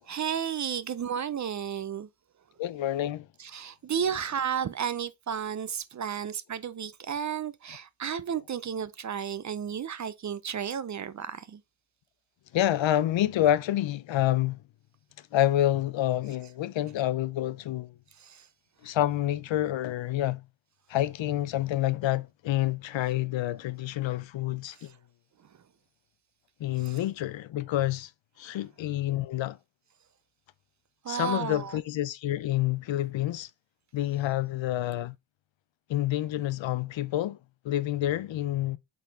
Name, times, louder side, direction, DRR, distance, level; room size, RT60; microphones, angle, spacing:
voice 1, 0.1-2.1 3.4-11.6 18.2-18.5 26.8-27.0 31.0-31.8, right 8 dB, 40° right, 0.5 m, -33 dB
voice 2, 2.6-3.3 12.5-14.6 15.3-17.9 18.8-20.4 20.9-24.9 26.6-28.1 28.4-29.6 31.1-33.5 33.9-35.2 35.9-37.4 37.6-38.8, left 13 dB, 75° left, 0.7 m, -28 dB
8.1 x 4.1 x 3.3 m
wide cardioid pair, 135°, 46 cm